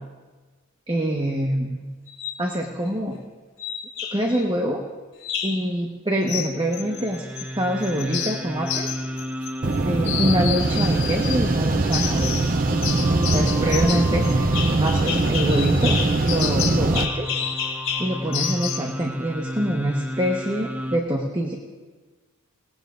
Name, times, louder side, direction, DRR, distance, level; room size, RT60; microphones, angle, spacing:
voice 1, 0.9-1.8 2.4-3.2 4.1-4.8 5.4-7.3 7.6-8.9 9.8-12.3 13.1-17.4 18.0-21.6, right 1 dB, 25° right, 0 dB, 1.3 m, -25 dB
sound 1, 2.1-2.4 3.6-4.4 5.2-5.7 6.3-7.5 7.8-9.8 10.0-11.4 11.9-12.5 12.8-18.9, left 7 dB, 70° left, 3.8 m, -30 dB
sound 2, 6.6-21.0, equal, 10° right, 0.7 m, -33 dB
sound 3, 9.6-17.1, right 2 dB, 40° right, 0.7 m, -22 dB
28.0 x 19.0 x 2.6 m, 1.3 s
head